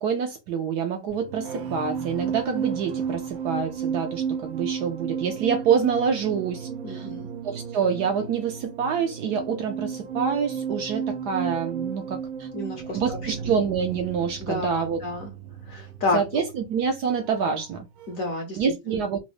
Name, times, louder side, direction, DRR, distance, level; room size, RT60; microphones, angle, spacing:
voice 1, 0.0-7.1 7.4-12.5 12.9-15.0 16.1-17.9 18.5-19.2, right 6 dB, 70° right, 1.0 m, -27 dB
sound 1, 1.1-17.7 18.0-18.3, right 7 dB, 85° right, 1.4 m, -33 dB
voice 2, 6.8-7.3 12.5-13.3 14.4-15.3 15.7-16.4 18.1-18.6 18.9-19.0, left 2 dB, 60° left, 0.9 m, -30 dB
3.9 x 2.0 x 3.0 m
omnidirectional pair, 2.1 m